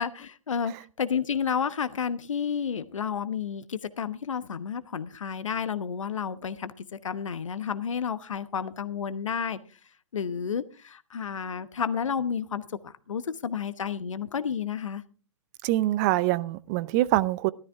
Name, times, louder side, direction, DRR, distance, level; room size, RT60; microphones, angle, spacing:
voice 1, 0.0-9.6 10.1-15.0, left 7 dB, 70° left, 1.0 m, -31 dB
voice 2, 15.6-17.5, right 16 dB, 30° right, 0.6 m, -24 dB
13.5 x 13.0 x 3.5 m
figure-of-eight pair, 120°, 17 cm